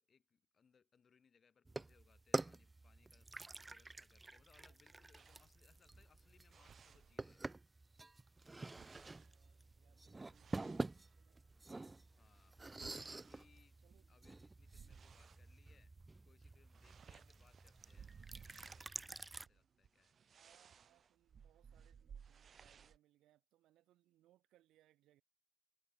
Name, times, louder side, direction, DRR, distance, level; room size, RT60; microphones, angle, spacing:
voice 1, 0.0-7.5 12.2-12.6 12.9-15.9 16.3-20.2, left 6 dB, 45° left, 4.8 m, -73 dB
sound 1, 1.6-19.5, right 2 dB, 20° right, 0.4 m, -48 dB
voice 2, 4.6-5.1 9.0-11.4 13.8-14.2 14.8-15.1 16.9-17.4 20.1-25.2, right 14 dB, 85° right, 5.3 m, -75 dB
sound 2, 5.1-7.7 8.0-11.6 12.1-15.5 15.9-16.2 16.4-23.0, right 7 dB, 50° right, 0.9 m, -61 dB
cardioid pair, 90°, 0 cm